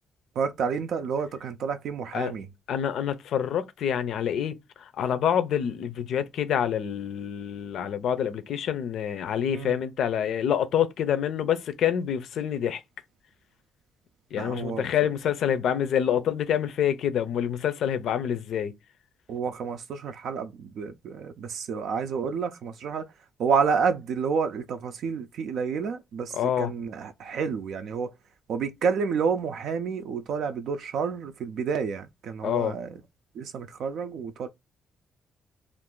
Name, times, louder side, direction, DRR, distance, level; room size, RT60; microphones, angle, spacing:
voice 1, 0.4-2.5 9.5-9.8 14.4-14.9 19.3-23.1 23.4-28.1 28.5-32.9 33.4-34.5, right 6 dB, 65° right, 0.4 m, -29 dB
voice 2, 2.7-12.8 14.3-18.7 26.3-26.7 32.4-32.8, left 9 dB, 65° left, 0.5 m, -27 dB
2.5 x 2.4 x 3.6 m
cardioid pair, 140°, 0 cm